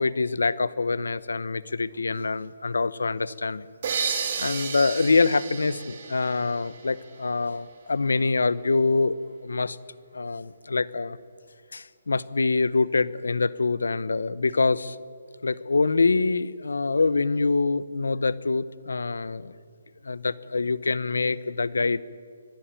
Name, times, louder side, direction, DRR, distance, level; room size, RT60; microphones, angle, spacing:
voice 1, 0.0-3.7 4.4-9.8 10.1-11.2 11.7-15.0 15.4-19.5 20.0-22.0, left 3 dB, 90° left, 18 dB, 0.8 m, -25 dB
sound 1, 3.8-7.4, right 6 dB, 50° right, 2.6 m, -32 dB
24.5 x 11.5 x 9.1 m, 2.1 s
hypercardioid pair, 155°, 0 cm